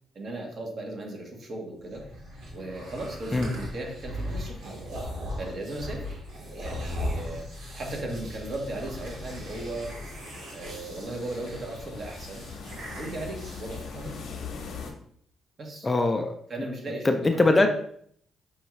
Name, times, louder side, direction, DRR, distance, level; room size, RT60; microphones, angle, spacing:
voice 1, 0.1-2.0 2.5-4.7 5.4-6.2 6.5-9.9 10.5-12.5 13.0-14.2 15.6-15.9 16.5-17.7, right 1 dB, 50° right, 1 dB, 1.1 m, -36 dB
sound 1, 1.8-14.2, equal, 80° right, 1.3 m, -38 dB
sound 2, 8.6-14.9, left 5 dB, 70° left, 0.7 m, -42 dB
voice 2, 15.8-16.3 17.0-17.7, left 2 dB, 25° left, 6 dB, 0.4 m, -22 dB
5.2 x 2.3 x 3.1 m, 0.64 s
cardioid pair, 90°, 0 cm